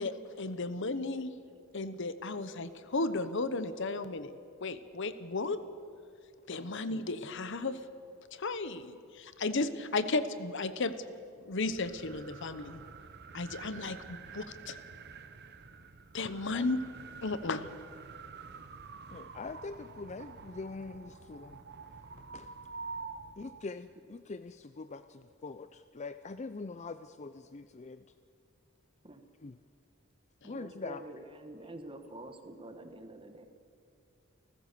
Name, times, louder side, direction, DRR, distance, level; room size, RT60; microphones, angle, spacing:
voice 1, 0.0-1.3 1.7-4.3 4.6-5.6 6.5-7.8 8.3-10.9 11.4-12.8 13.3-14.8 16.1-16.8 17.2-17.7, left 3 dB, 60° left, 13 dB, 1.0 m, -34 dB
sound 1, 11.5-23.7, right 4 dB, 50° right, 0.9 m, -48 dB
voice 2, 19.1-21.6 22.3-22.5 23.4-28.0 29.4-29.6 30.5-31.0, left 3 dB, 35° left, 12 dB, 0.5 m, -43 dB
voice 3, 30.4-33.5, right 2 dB, 25° right, 8 dB, 1.3 m, -47 dB
29.0 x 14.5 x 6.8 m, 2.4 s
head